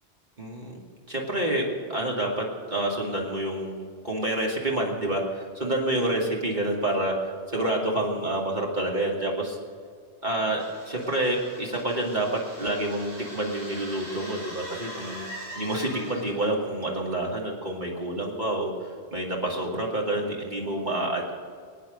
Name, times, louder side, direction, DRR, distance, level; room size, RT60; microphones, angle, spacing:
voice 1, 0.4-0.8 1.1-1.6 1.9-7.1 7.5-9.6 10.2-15.2 15.6-18.7 19.1-21.3, right 1 dB, 45° right, -3 dB, 2.6 m, -28 dB
sound 1, 10.6-16.5, equal, 75° right, 5.6 m, -42 dB
22.5 x 9.5 x 6.6 m, 2.1 s
omnidirectional pair, 1.1 m